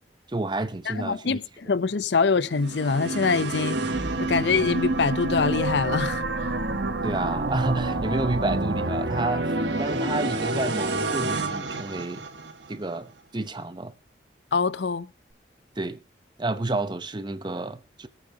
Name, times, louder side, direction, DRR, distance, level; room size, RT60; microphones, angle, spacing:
voice 1, 0.3-1.4 7.0-12.2 12.7-13.9 15.8-16.0 16.4-18.1, right 2 dB, 25° right, 0.7 m, -30 dB
voice 2, 0.9-3.8 4.2-6.5 14.5-15.1, left 4 dB, 70° left, 0.6 m, -24 dB
sound 1, 2.5-12.7, right 2 dB, 70° right, 1.2 m, -28 dB
23.5 x 9.0 x 2.8 m
head